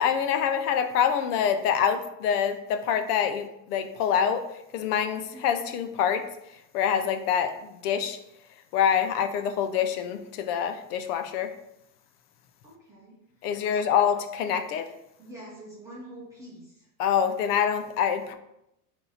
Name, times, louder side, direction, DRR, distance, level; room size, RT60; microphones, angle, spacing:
voice 1, 0.0-8.2 8.7-11.5 13.4-14.9 17.0-18.3, left 8 dB, 75° left, 9 dB, 0.6 m, -26 dB
voice 2, 12.6-13.2 13.6-13.9 15.2-16.9, right 1 dB, 5° right, -8 dB, 0.5 m, -46 dB
4.1 x 2.7 x 4.0 m, 0.83 s
supercardioid pair, 165°, 46 cm